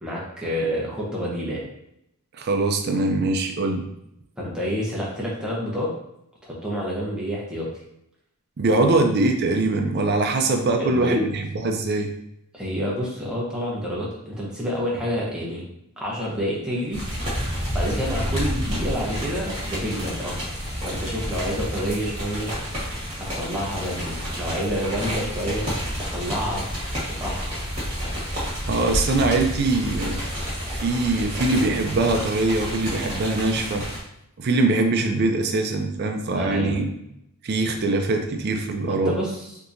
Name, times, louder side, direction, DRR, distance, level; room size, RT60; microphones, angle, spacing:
voice 1, 0.0-1.7 4.4-5.9 6.4-7.8 10.8-11.3 12.5-15.7 16.0-17.0 17.7-20.4 20.8-22.5 23.4-25.7 26.1-26.7 27.2-27.6 36.3-36.8 38.8-39.6, equal, 5° right, -6 dB, 0.7 m, -28 dB
voice 2, 2.4-3.9 8.6-12.1 28.7-30.2 30.7-33.9 34.4-36.9 37.4-39.2, right 2 dB, 45° right, 4 dB, 0.4 m, -22 dB
sound 1, 16.9-34.0, equal, 25° right, 1.4 m, -29 dB
3.6 x 2.8 x 2.6 m, 0.79 s
head